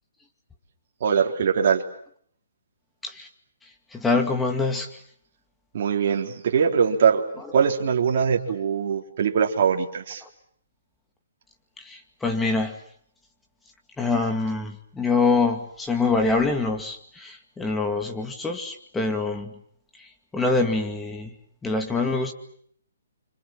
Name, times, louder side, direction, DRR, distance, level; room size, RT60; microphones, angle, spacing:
voice 1, 1.0-1.8 5.7-7.2 7.5-10.2, right 6 dB, 45° right, 1 dB, 3.9 m, -22 dB
voice 2, 3.9-4.9 11.8-12.7 14.0-19.5 20.3-21.3 21.6-22.3, left 3 dB, 5° left, 4 dB, 2.3 m, -25 dB
29.0 x 26.0 x 7.6 m, 0.63 s
hypercardioid pair, 165°, 0 cm